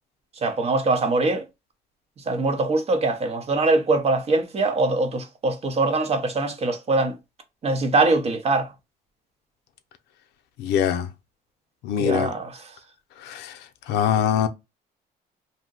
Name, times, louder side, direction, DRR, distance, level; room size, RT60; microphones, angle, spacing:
voice 1, 0.4-1.4 2.3-7.2 7.6-8.7 12.0-12.5, right 2 dB, 40° right, 0.7 m, -22 dB
voice 2, 10.6-11.1 11.8-12.3 13.2-13.6 13.9-14.5, left 9 dB, 85° left, 0.5 m, -23 dB
2.7 x 2.1 x 3.7 m
cardioid pair, 110°, 17 cm